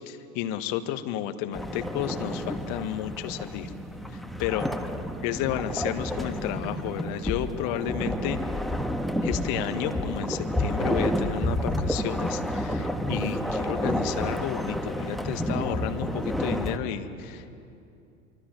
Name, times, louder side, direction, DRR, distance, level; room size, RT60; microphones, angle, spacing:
voice 1, 0.1-3.7 4.4-4.7 5.2-8.4 9.2-17.5, left 11 dB, 50° left, 9 dB, 1.7 m, -32 dB
sound 1, 1.5-16.8, equal, ahead, 1.5 m, -30 dB
24.5 x 24.5 x 7.7 m, 2.6 s
figure-of-eight pair, 80°, 43 cm